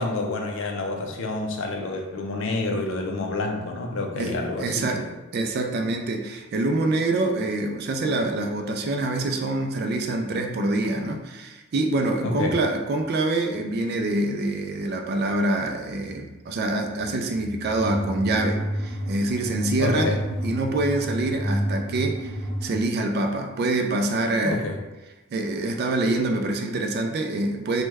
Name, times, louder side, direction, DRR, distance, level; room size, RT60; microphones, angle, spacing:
voice 1, 0.0-5.1 12.2-12.6 19.8-20.2 24.4-24.8, left 2 dB, 60° left, 2 dB, 0.5 m, -28 dB
voice 2, 4.2-5.0 5.3-20.2 20.4-24.6 25.3-27.8, right 2 dB, 45° right, 4 dB, 0.3 m, -25 dB
sound 1, 17.8-22.8, equal, 30° left, 1.3 m, -29 dB
3.1 x 2.2 x 3.3 m, 1.1 s
head